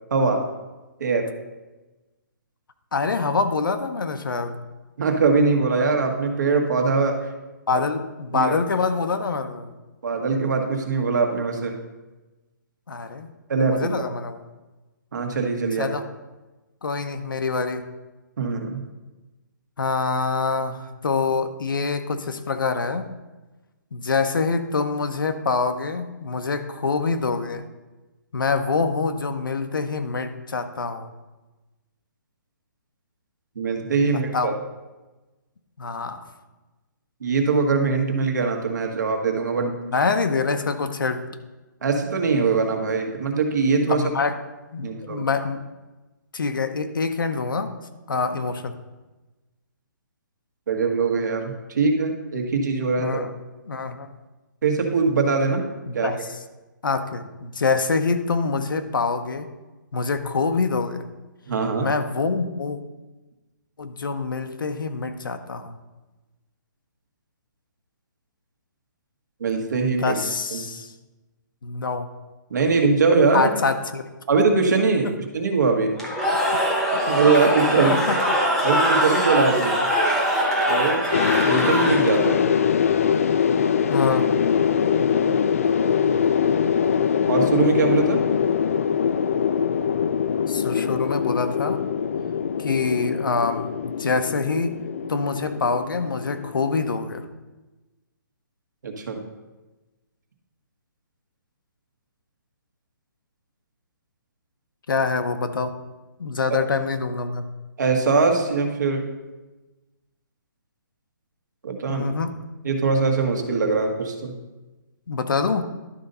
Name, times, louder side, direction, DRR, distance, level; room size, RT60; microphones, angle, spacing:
voice 1, 0.1-0.4 1.0-1.3 5.0-7.2 8.3-8.5 10.0-11.8 13.5-13.9 15.1-15.9 18.4-18.8 33.6-34.5 37.2-39.8 41.8-44.0 44.8-45.2 50.7-53.2 54.6-55.6 55.9-56.1 61.5-61.9 69.4-70.2 70.5-70.6 72.5-73.5 74.3-76.0 76.9-77.9 78.6-79.8 80.7-81.1 81.4-82.5 87.3-88.2 98.8-99.2 106.5-106.6 107.8-109.1 111.6-112.1 112.6-114.3, right 4 dB, 60° right, 3 dB, 1.4 m, -22 dB
voice 2, 2.9-4.6 7.7-9.7 12.9-13.3 13.7-14.4 15.8-16.0 16.8-17.8 19.8-23.0 23.9-27.7 28.3-31.1 34.3-34.5 35.8-36.2 39.9-41.2 43.9-44.3 44.7-45.6 46.3-47.7 48.1-48.7 53.0-53.3 53.7-54.1 55.9-56.2 56.8-59.5 59.9-61.1 61.8-62.8 63.8-65.8 70.0-70.9 71.6-72.1 73.3-74.0 77.3-78.2 83.9-84.3 90.5-91.8 92.6-94.7 95.1-97.2 104.9-105.7 106.2-107.4 111.8-112.3 115.1-115.6, left 4 dB, 90° left, 8 dB, 0.9 m, -25 dB
Cheering / Crowd, 76.0-82.3, equal, ahead, 0.9 m, -22 dB
sound 1, 81.1-97.3, left 7 dB, 45° left, 0.4 m, -23 dB
11.5 x 4.0 x 5.4 m, 1.1 s
hypercardioid pair, 170°, 11 cm